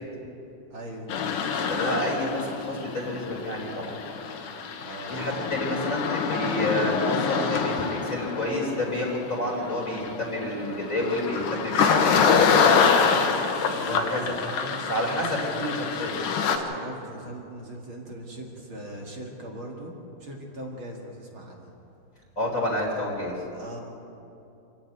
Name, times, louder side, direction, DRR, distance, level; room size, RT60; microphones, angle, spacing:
voice 1, 0.7-1.1 4.8-5.2 13.7-14.0 14.5-16.1 16.5-19.9 20.2-21.7 23.5-23.8, right 1 dB, 45° right, 0 dB, 1.9 m, -40 dB
sound 1, 1.1-16.6, left 6 dB, 65° left, 2.5 m, -26 dB
voice 2, 1.7-3.9 5.1-12.9 13.9-14.4 14.9-16.2 22.4-23.3, left 1 dB, 20° left, -3 dB, 3.6 m, -29 dB
27.5 x 10.5 x 9.4 m, 2.8 s
omnidirectional pair, 4.8 m